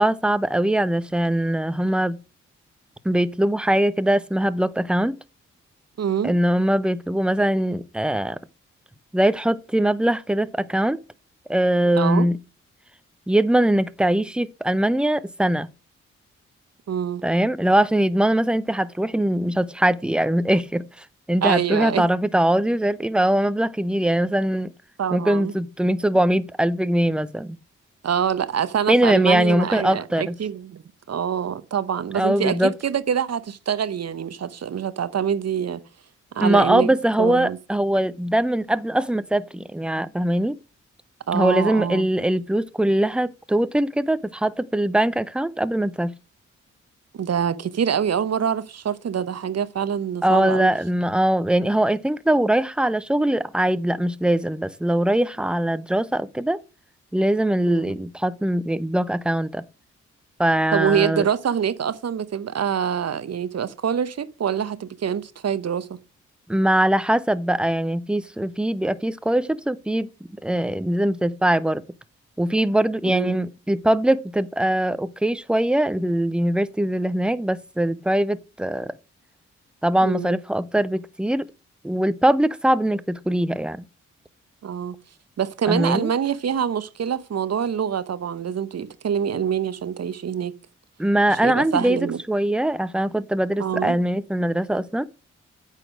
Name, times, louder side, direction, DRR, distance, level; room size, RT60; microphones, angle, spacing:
voice 1, 0.0-2.2 3.0-5.2 6.2-8.4 9.1-11.0 11.5-12.4 13.3-15.7 17.2-24.7 25.1-27.6 28.9-30.3 32.1-32.7 36.4-40.6 41.3-46.1 50.2-56.6 57.1-59.6 60.4-61.2 66.5-70.1 70.4-71.8 72.4-78.9 79.8-81.5 81.8-83.8 85.7-86.1 91.0-95.0, right 1 dB, 5° right, 0.6 m, -21 dB
voice 2, 6.0-6.3 12.0-12.3 16.9-17.2 21.4-22.1 25.0-25.5 28.0-30.8 31.1-35.8 36.3-36.9 37.2-37.6 41.3-42.1 47.1-50.7 57.7-58.0 60.7-66.0 73.0-73.4 80.0-80.4 84.6-85.0 85.4-90.5 91.3-92.2 93.6-94.0, right 8 dB, 55° right, 0.9 m, -25 dB
8.9 x 4.2 x 6.1 m
supercardioid pair, 40°, 31 cm